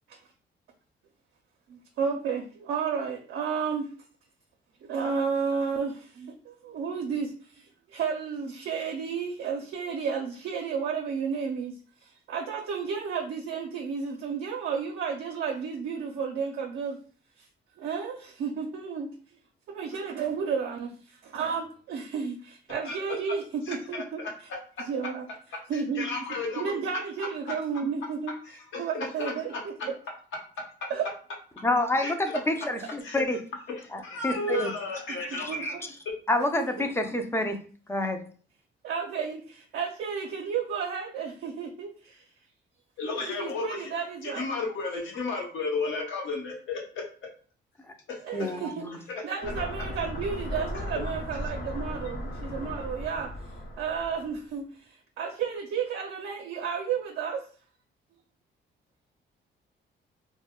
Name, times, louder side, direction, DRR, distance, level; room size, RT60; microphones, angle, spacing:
voice 1, 2.0-3.9 4.8-11.8 12.0-17.0 17.4-17.5 17.8-19.1 19.7-24.2 24.9-25.2 25.7-26.1 26.5-28.3 28.8-29.9 30.9-31.1 35.3-35.7 38.8-42.2 43.0-44.5 48.2-48.9 49.2-53.3 53.8-57.4, right 6 dB, 75° right, 2 dB, 0.5 m, -32 dB
voice 2, 23.7-24.3 25.7-26.7 27.2-27.3 28.4-28.9 29.2-29.6 32.0-32.4 33.0-33.2 33.7-35.8 36.0-36.1 43.0-43.9 44.2-46.8 48.1-48.2 48.5-48.6 49.1-49.2, left 3 dB, 75° left, 0 dB, 0.9 m, -33 dB
voice 3, 31.6-33.4 33.9-34.7 35.4-35.5 36.3-37.6 37.9-38.2 48.3-49.0, left 1 dB, 10° left, 6 dB, 0.4 m, -28 dB
sound 1, 49.4-54.4, left 1 dB, 50° left, 0.6 m, -36 dB
2.2 x 2.1 x 3.6 m, 0.42 s
cardioid pair, 90°, 20 cm